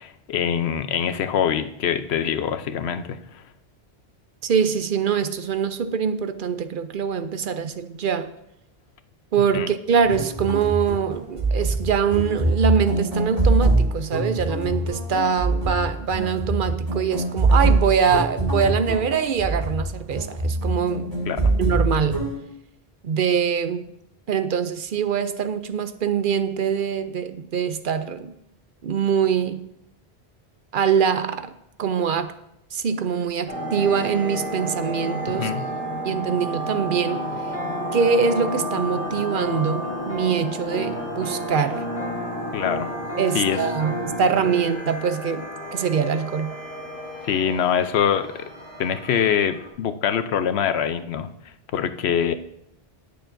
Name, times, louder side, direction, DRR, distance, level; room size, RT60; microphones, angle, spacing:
voice 1, 0.0-3.2 9.5-9.7 21.3-21.5 35.4-35.6 42.5-42.9 43.3-43.6 47.2-48.5 48.8-51.3 51.7-52.3, left 8 dB, 80° left, 0.9 m, -24 dB
voice 2, 4.4-8.3 9.3-21.1 21.6-22.2 23.0-23.8 24.3-28.3 28.8-29.7 30.7-31.5 31.8-32.3 32.7-35.5 36.0-37.2 37.9-41.8 43.2-46.6, right 7 dB, 60° right, 0.7 m, -23 dB
sound 1, 10.0-22.4, right 2 dB, 35° right, 2.1 m, -24 dB
sound 2, 33.5-49.7, right 1 dB, 10° left, 3.1 m, -32 dB
sound 3, 37.1-44.4, left 1 dB, 45° left, 1.9 m, -33 dB
19.5 x 6.8 x 2.6 m
omnidirectional pair, 1.1 m